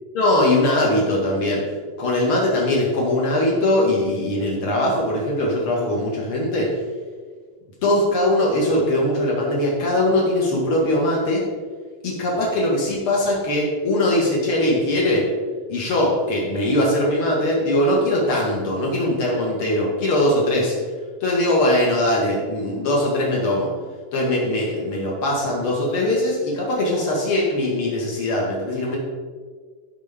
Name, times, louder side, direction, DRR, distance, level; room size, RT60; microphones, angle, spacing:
voice 1, 0.1-1.6 2.0-6.7 7.8-11.4 12.0-15.3 15.7-20.7 21.2-23.7 24.1-29.0, left 1 dB, 85° left, -3 dB, 1.1 m, -21 dB
17.0 x 6.4 x 3.6 m, 1.5 s
omnidirectional pair, 5.8 m